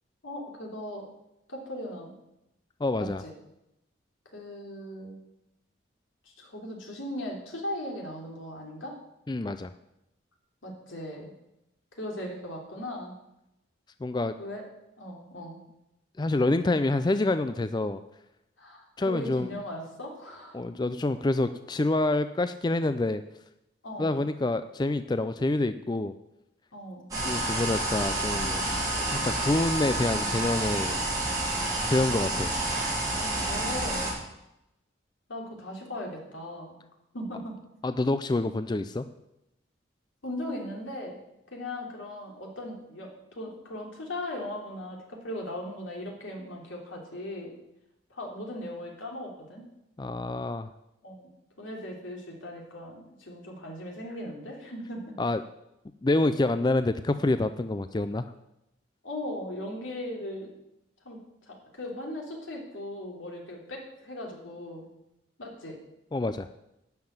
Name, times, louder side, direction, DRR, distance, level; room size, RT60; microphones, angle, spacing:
voice 1, 0.2-1.1 1.5-2.1 3.0-3.3 4.3-5.2 6.2-9.0 10.6-11.3 11.9-13.1 14.4-14.6 15.0-15.6 18.6-20.8 23.8-24.2 26.7-27.0 33.0-34.1 35.3-36.8 37.1-37.5 40.2-41.2 41.5-47.5 48.1-49.6 51.0-51.3 51.6-55.2 59.0-60.5 61.0-64.9 65.4-65.8, left 1 dB, 85° left, 0 dB, 3.1 m, -38 dB
voice 2, 2.8-3.2 9.3-9.7 14.0-14.3 16.2-18.0 19.0-19.5 20.5-23.2 24.0-26.1 27.2-28.6 29.1-31.0 31.9-32.5 37.8-39.0 50.0-50.7 55.2-55.4 56.0-58.2 66.1-66.5, left 2 dB, 20° left, 11 dB, 0.4 m, -27 dB
sound 1, 27.1-34.1, right 2 dB, 20° right, 4.1 m, -29 dB
11.5 x 5.8 x 8.9 m, 0.87 s
head